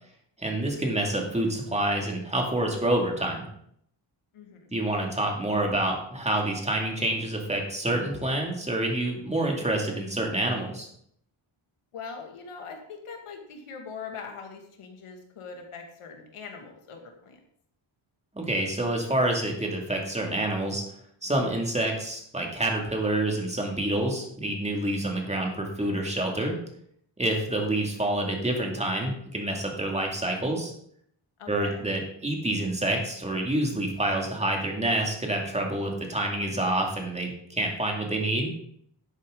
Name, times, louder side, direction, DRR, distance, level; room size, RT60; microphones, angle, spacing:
voice 1, 0.4-3.4 4.7-10.9 18.3-20.8 21.2-26.6 27.2-30.7 31.5-38.5, right 1 dB, 15° right, 1 dB, 2.4 m, -27 dB
voice 2, 4.3-4.7 11.9-17.4 31.4-31.8, left 5 dB, 90° left, 3 dB, 2.3 m, -42 dB
11.5 x 8.2 x 3.9 m, 0.68 s
wide cardioid pair, 125°, 50 cm